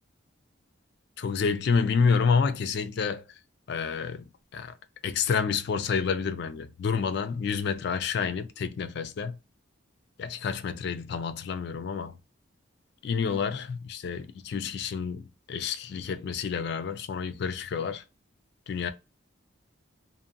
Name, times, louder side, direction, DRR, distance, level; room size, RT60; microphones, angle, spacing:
voice 1, 1.2-3.2 3.7-4.7 5.0-9.4 10.2-12.1 13.0-18.0 18.7-18.9, left 5 dB, 55° left, 0.3 m, -29 dB
2.6 x 2.2 x 2.5 m
head